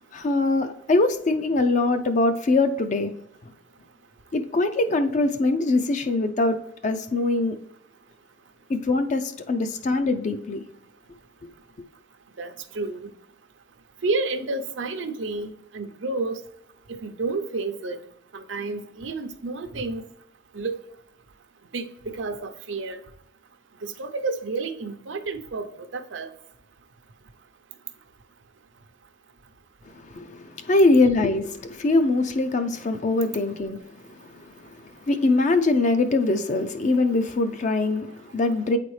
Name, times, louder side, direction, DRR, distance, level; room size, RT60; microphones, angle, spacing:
voice 1, 0.1-3.1 4.3-7.6 8.7-10.6 29.9-38.8, left 2 dB, 40° left, 0.4 m, -23 dB
voice 2, 12.4-13.1 14.0-16.4 16.9-18.0 18.3-20.0 20.5-20.8 21.7-23.0 23.8-26.3, right 3 dB, 80° right, 0.6 m, -30 dB
8.5 x 4.1 x 3.2 m
head